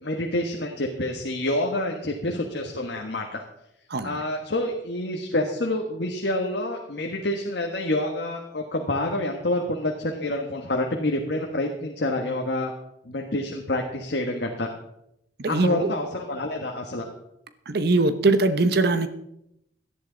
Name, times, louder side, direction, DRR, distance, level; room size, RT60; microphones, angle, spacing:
voice 1, 0.0-3.4 4.0-12.7 13.0-14.7 15.5-17.1, left 1 dB, 65° left, 2 dB, 1.4 m, -27 dB
voice 2, 3.9-4.2 15.4-15.9 17.7-19.1, right 2 dB, 60° right, 11 dB, 1.0 m, -21 dB
17.5 x 12.0 x 4.0 m, 0.80 s
head